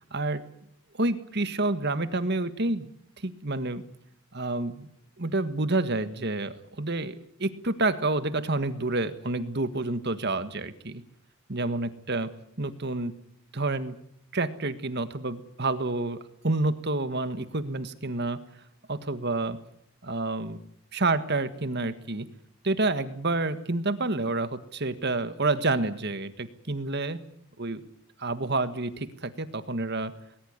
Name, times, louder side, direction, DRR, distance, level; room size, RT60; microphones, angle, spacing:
voice 1, 0.1-0.4 1.0-3.8 4.3-4.9 5.2-11.0 11.5-12.3 12.6-13.1 13.5-13.9 14.3-18.4 18.9-19.6 20.0-20.6 20.9-22.3 22.6-27.2 27.6-27.8 28.2-30.1, right 2 dB, 50° right, 12 dB, 1.6 m, -29 dB
20.0 x 19.5 x 9.7 m, 0.70 s
head